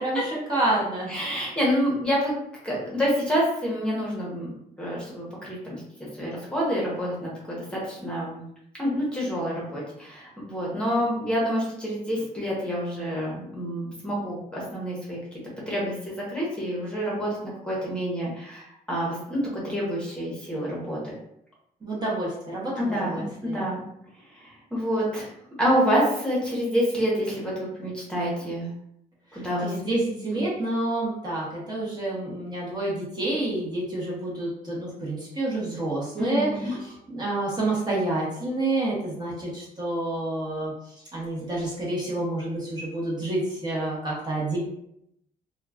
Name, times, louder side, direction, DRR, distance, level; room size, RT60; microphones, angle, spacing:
voice 1, 0.0-1.2 21.8-23.6 29.6-40.7 41.1-44.6, right 2 dB, 25° right, -6 dB, 0.9 m, -28 dB
voice 2, 1.1-2.3 2.6-4.5 4.8-5.8 6.2-8.4 8.8-15.2 15.7-21.1 22.8-23.8 24.4-25.3 25.6-28.7 29.3-30.0 30.3-30.4 36.2-36.7, equal, 5° left, -5 dB, 0.9 m, -28 dB
2.9 x 2.2 x 2.3 m, 0.76 s
cardioid pair, 125°, 15 cm